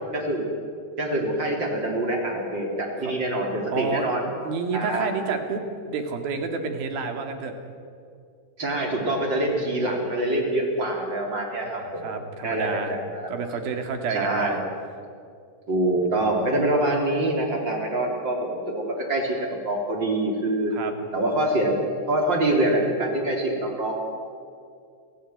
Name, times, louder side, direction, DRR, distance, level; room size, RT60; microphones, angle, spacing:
voice 1, 0.1-0.5 1.0-4.3 4.7-5.1 8.6-12.0 12.4-13.3 14.1-14.6 15.7-20.7 21.1-23.9, right 1 dB, 30° right, 1 dB, 4.0 m, -25 dB
voice 2, 3.7-4.1 4.4-7.5 11.6-13.0 13.3-14.6 20.7-20.9, right 4 dB, 65° right, 5 dB, 3.9 m, -29 dB
28.5 x 17.5 x 9.4 m, 2.3 s
omnidirectional pair, 4.7 m